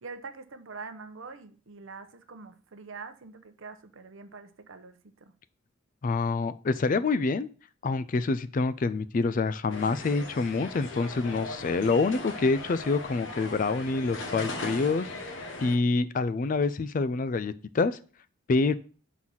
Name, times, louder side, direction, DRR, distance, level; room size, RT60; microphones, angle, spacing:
voice 1, 0.0-5.3, right 4 dB, 70° right, 9 dB, 0.7 m, -44 dB
voice 2, 6.0-7.5 7.8-15.3 15.6-18.0 18.5-18.7, left 3 dB, 40° left, 15 dB, 0.3 m, -27 dB
sound 1, 9.7-15.8, left 2 dB, 65° left, 1.0 m, -39 dB
5.7 x 4.0 x 6.1 m, 0.40 s
head